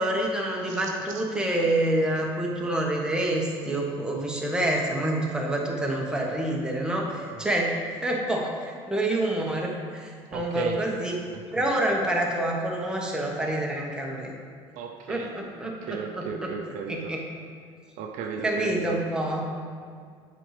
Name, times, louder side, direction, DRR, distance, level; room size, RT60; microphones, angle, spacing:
voice 1, 0.0-11.2 11.5-14.3 15.1-16.5 16.9-17.2 18.4-19.4, right 1 dB, 5° right, -2 dB, 1.2 m, -27 dB
voice 2, 0.7-1.2 7.3-7.4 10.3-10.8 11.3-11.6 14.8-15.3 15.6-17.1 18.0-19.0, right 6 dB, 65° right, 4 dB, 0.5 m, -35 dB
7.5 x 5.0 x 3.3 m, 2.1 s
hypercardioid pair, 75°, 14 cm